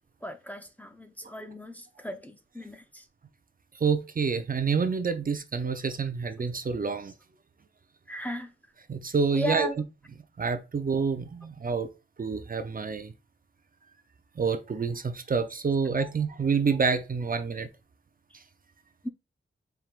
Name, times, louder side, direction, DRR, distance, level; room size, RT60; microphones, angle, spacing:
voice 1, 0.2-3.0 8.1-8.5 9.3-9.8 19.0-19.1, equal, 5° left, 0.6 m, -35 dB
voice 2, 3.8-7.1 8.9-9.7 10.4-11.9 12.2-13.1 14.4-17.7, right 5 dB, 45° right, 0.5 m, -28 dB
4.5 x 3.5 x 2.4 m
wide cardioid pair, 95°, 21 cm